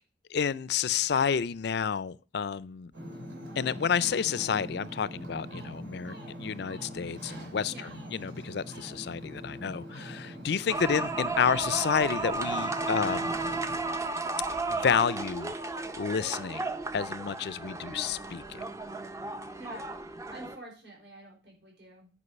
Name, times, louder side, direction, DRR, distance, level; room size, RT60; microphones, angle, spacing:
voice 1, 0.3-2.9 3.6-13.3 14.7-15.5 16.0-18.4, left 7 dB, 60° left, 0.4 m, -30 dB
Ocean, 2.9-13.8, equal, 80° right, 3.1 m, -43 dB
voice 2, 7.7-8.0 19.4-19.8 20.3-22.1, right 1 dB, 65° right, 4.8 m, -47 dB
sound 1, 10.7-20.6, right 3 dB, 15° right, 0.5 m, -34 dB
9.8 x 5.2 x 5.2 m
head